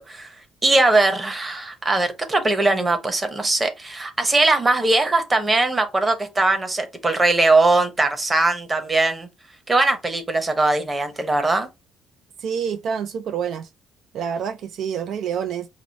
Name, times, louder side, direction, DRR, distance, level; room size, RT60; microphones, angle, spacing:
voice 1, 0.6-9.3 9.7-11.7, right 2 dB, 20° right, 0.9 m, -20 dB
voice 2, 12.4-13.7 14.1-15.7, right 7 dB, 65° right, 0.3 m, -27 dB
4.7 x 2.0 x 4.0 m
cardioid pair, 125°, 0 cm